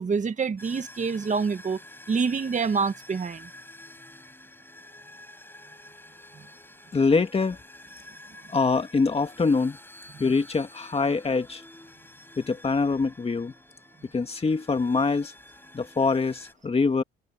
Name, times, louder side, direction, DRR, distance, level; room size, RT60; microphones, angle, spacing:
voice 1, 0.0-1.8 2.1-3.5, right 5 dB, 40° right, 1.8 m, -26 dB
sound 1, 0.6-16.5, left 1 dB, 10° left, 7.2 m, -49 dB
voice 2, 6.9-7.6 8.5-9.8 10.2-11.6 12.4-13.5 14.1-15.3 15.7-17.0, left 4 dB, 30° left, 2.3 m, -24 dB
cardioid pair, 90°, 20 cm